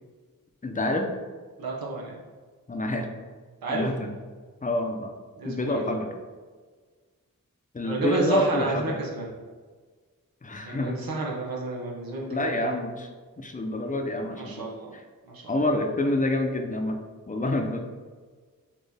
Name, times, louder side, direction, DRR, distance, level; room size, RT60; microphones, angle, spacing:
voice 1, 0.6-1.1 2.7-3.1 3.7-4.2 4.6-5.1 5.4-6.1 7.7-9.0 10.4-11.0 12.3-13.1 13.4-14.7 14.9-15.0 15.5-17.0 17.3-17.8, left 1 dB, 25° left, 4 dB, 0.6 m, -27 dB
voice 2, 1.6-2.2 3.6-3.8 5.4-6.0 7.8-9.4 10.6-12.7 14.2-14.9 15.3-15.6, right 2 dB, 90° right, -3 dB, 0.8 m, -31 dB
4.2 x 2.9 x 3.4 m, 1.5 s
cardioid pair, 60°, 34 cm